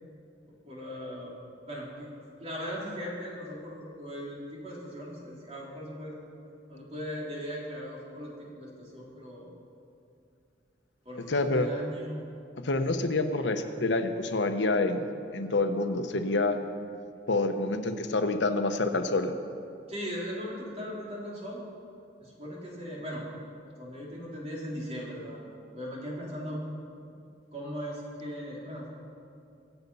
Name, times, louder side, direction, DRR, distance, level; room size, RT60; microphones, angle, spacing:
voice 1, 0.6-1.3 1.7-1.9 2.2-6.2 6.7-9.5 11.0-12.2 19.9-21.6 22.2-23.2 23.8-25.4 25.7-26.6 27.0-27.1 27.5-28.9, equal, 35° right, -4 dB, 3.4 m, -38 dB
voice 2, 11.2-11.7 12.6-15.1 15.3-16.6 17.3-19.3, left 2 dB, 75° left, 7 dB, 1.0 m, -27 dB
24.0 x 8.1 x 5.5 m, 2.5 s
head